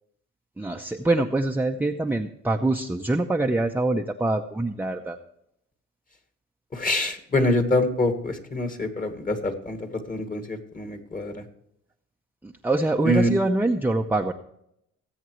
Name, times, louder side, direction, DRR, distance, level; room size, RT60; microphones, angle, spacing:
voice 1, 0.6-5.2 12.4-14.3, right 2 dB, 5° right, 3 dB, 0.6 m, -24 dB
voice 2, 6.7-11.4 13.0-13.3, left 1 dB, 25° left, 7 dB, 1.9 m, -25 dB
20.0 x 8.1 x 3.1 m, 0.76 s
cardioid pair, 90°, 30 cm